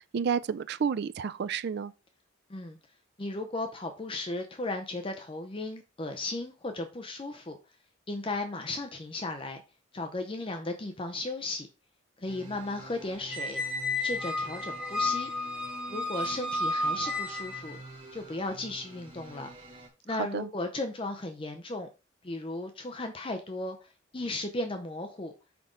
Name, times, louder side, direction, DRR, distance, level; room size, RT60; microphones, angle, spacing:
voice 1, 0.0-1.9 20.3-20.5, right 6 dB, 55° right, 0.3 m, -30 dB
voice 2, 3.2-7.6 8.1-9.6 9.9-11.7 12.2-13.6 14.0-15.3 15.9-17.8 18.1-19.5 20.1-21.9 22.2-25.3, left 2 dB, 25° left, 0.6 m, -35 dB
sound 1, 12.3-19.9, right 1 dB, 30° right, 1.8 m, -48 dB
Squeak, 13.3-17.8, left 2 dB, 5° right, 0.9 m, -32 dB
6.0 x 5.2 x 3.7 m
head